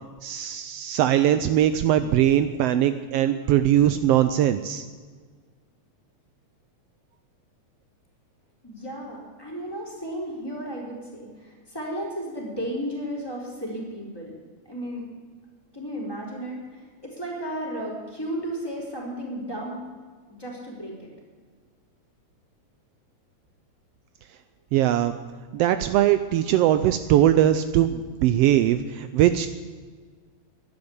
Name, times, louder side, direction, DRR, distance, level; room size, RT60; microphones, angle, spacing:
voice 1, 0.2-4.8 24.7-25.1 25.5-29.5, right 11 dB, 85° right, 11 dB, 1.4 m, -21 dB
voice 2, 8.6-14.3 14.7-15.1 15.7-19.8 20.3-21.1, equal, 5° left, -3 dB, 4.0 m, -34 dB
12.0 x 10.5 x 8.6 m, 1.5 s
omnidirectional pair, 3.4 m